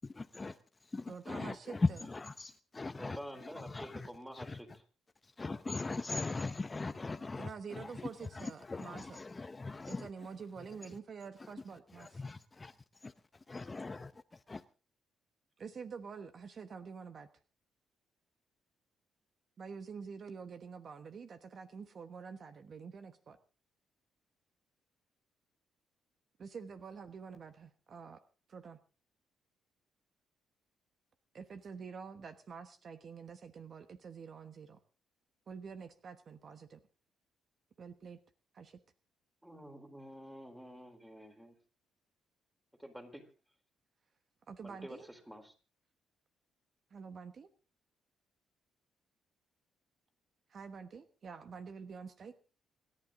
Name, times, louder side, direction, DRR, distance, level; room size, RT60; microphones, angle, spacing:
voice 1, 0.0-4.6 5.2-10.3 10.8-10.9 11.4-11.5 11.9-14.6, left 3 dB, 25° left, 0.7 m, -40 dB
voice 2, 1.1-2.0 7.4-9.2 9.9-12.2 15.6-17.3 19.6-23.4 26.4-28.2 28.5-28.8 31.3-34.8 35.5-36.8 37.8-38.2 38.5-38.8 44.5-45.1 46.9-47.5 50.5-52.4, right 5 dB, 50° right, 1.2 m, -47 dB
voice 3, 2.9-4.8 39.4-41.6 42.8-43.3 44.6-45.5, equal, 5° right, 4.1 m, -49 dB
27.5 x 11.0 x 3.8 m
cardioid pair, 90°, 0 cm